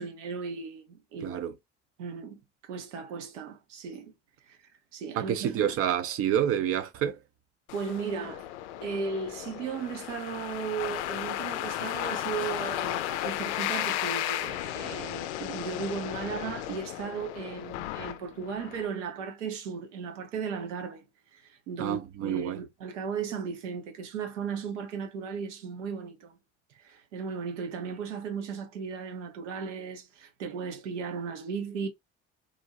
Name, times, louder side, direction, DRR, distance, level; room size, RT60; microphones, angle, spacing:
voice 1, 0.0-1.4 2.0-4.1 4.5-4.6 4.9-5.7 7.7-8.4 8.8-21.0 21.3-26.4 26.8-31.9, right 6 dB, 80° right, 0.7 m, -36 dB
voice 2, 1.2-1.5 5.2-7.2 21.8-22.6, right 10 dB, 40° right, 0.4 m, -28 dB
sound 1, 7.7-18.9, left 13 dB, 70° left, 0.5 m, -34 dB
2.5 x 2.1 x 2.8 m
figure-of-eight pair, 50°, 36 cm